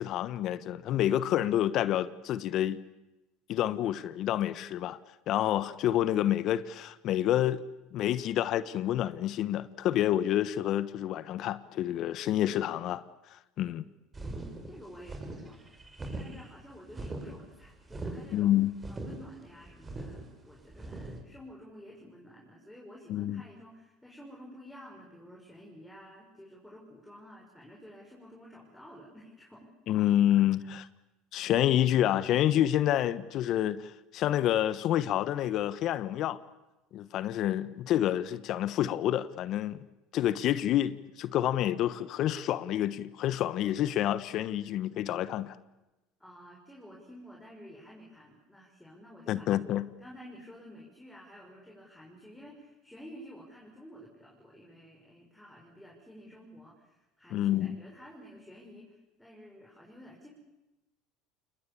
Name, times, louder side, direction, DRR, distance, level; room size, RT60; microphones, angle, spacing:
voice 1, 0.0-2.8 3.5-5.0 5.3-7.6 7.9-13.0 13.6-13.8 18.3-18.7 23.1-23.4 29.9-30.9 31.3-36.4 36.9-39.8 40.1-45.6 49.3-49.9 57.3-57.8, left 12 dB, 55° left, 1.1 m, -28 dB
sound 1, 14.1-21.2, right 2 dB, 20° right, 5.8 m, -41 dB
voice 2, 14.3-15.6 16.1-18.5 18.9-29.7 46.2-49.4 50.0-60.3, equal, 5° left, 6.3 m, -51 dB
28.0 x 20.5 x 8.6 m
hypercardioid pair, 85°, 0 cm